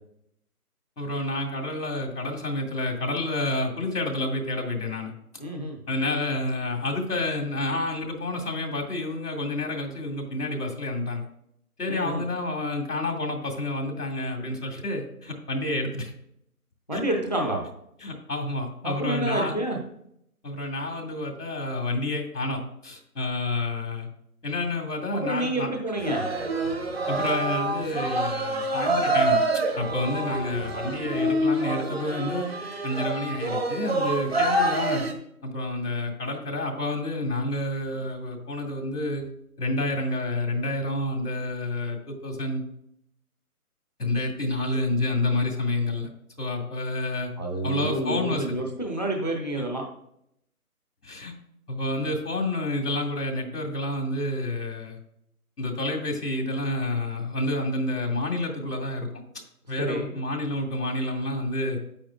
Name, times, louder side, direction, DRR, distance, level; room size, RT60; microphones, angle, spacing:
voice 1, 1.0-5.1 5.9-11.2 11.8-16.1 16.9-17.0 18.0-19.6 20.4-24.1 24.4-25.7 27.1-29.4 29.8-32.5 32.8-35.0 35.4-39.3 39.6-42.6 44.0-46.1 46.4-47.3 47.6-48.6 49.6-49.7 51.0-51.3 51.7-55.0 55.6-59.1 59.7-61.8, left 2 dB, 80° left, 1 dB, 2.3 m, -29 dB
voice 2, 5.4-5.8 11.9-12.2 16.9-17.6 18.8-19.8 25.1-26.2 47.4-49.8 59.8-60.1, right 1 dB, 30° left, 2 dB, 0.7 m, -28 dB
sound 1, 26.0-35.1, right 2 dB, 40° right, 1.0 m, -26 dB
9.0 x 8.7 x 2.3 m, 0.74 s
figure-of-eight pair, 170°, 46 cm